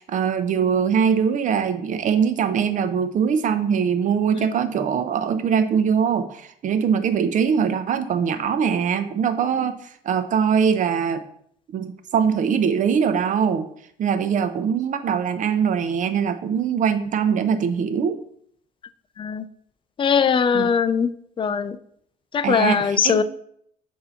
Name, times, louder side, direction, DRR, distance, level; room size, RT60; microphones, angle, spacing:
voice 1, 0.0-9.8 10.0-11.2 11.7-13.7 14.0-18.2 20.5-20.7 22.4-23.2, right 7 dB, 50° right, 10 dB, 0.7 m, -22 dB
voice 2, 20.0-21.1 21.4-21.8 22.3-23.2, left 6 dB, 30° left, 13 dB, 0.4 m, -20 dB
6.7 x 2.8 x 5.6 m, 0.68 s
cardioid pair, 110°, 17 cm